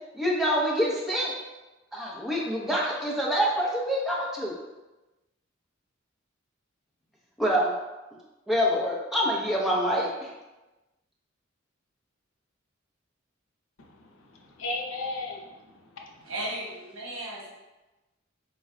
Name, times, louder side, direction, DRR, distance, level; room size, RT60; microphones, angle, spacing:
voice 1, 0.1-1.3 1.9-4.6 7.4-7.7 8.5-10.3, equal, ahead, -4 dB, 0.7 m, -26 dB
voice 2, 13.8-16.3, left 2 dB, 85° left, 1 dB, 0.6 m, -37 dB
voice 3, 16.2-17.5, right 1 dB, 75° right, -4 dB, 1.1 m, -35 dB
4.5 x 2.2 x 3.7 m, 1.1 s
head